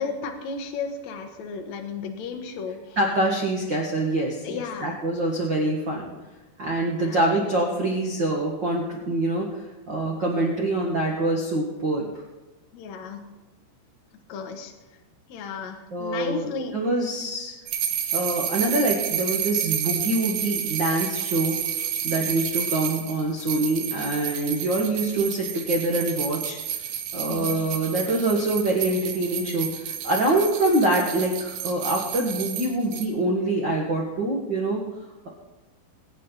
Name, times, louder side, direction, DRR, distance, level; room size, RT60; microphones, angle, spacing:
voice 1, 0.0-3.0 4.4-5.0 7.0-7.2 12.7-13.2 14.3-14.7 15.3-16.8 27.3-27.6, left 5 dB, 65° left, 3 dB, 1.8 m, -34 dB
voice 2, 3.0-6.1 6.6-9.5 9.9-12.1 15.9-17.5 18.1-21.5 22.0-26.6 27.1-34.8, right 2 dB, 90° right, -2 dB, 1.0 m, -25 dB
sound 1, 17.7-33.1, right 9 dB, 70° right, 2.5 m, -30 dB
22.5 x 8.7 x 4.1 m, 1.1 s
omnidirectional pair, 5.0 m